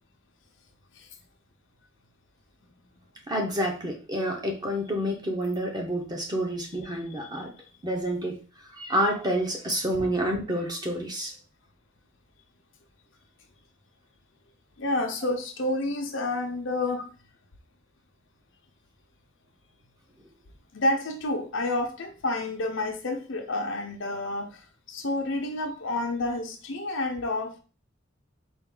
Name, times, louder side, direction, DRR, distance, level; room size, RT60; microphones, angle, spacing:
voice 1, 3.3-7.5 7.8-8.4 8.7-11.3, equal, 20° right, 1 dB, 0.9 m, -28 dB
voice 2, 14.8-17.1 20.7-24.6 24.9-27.6, left 2 dB, 65° left, 4 dB, 0.8 m, -29 dB
4.4 x 2.5 x 3.8 m, 0.35 s
head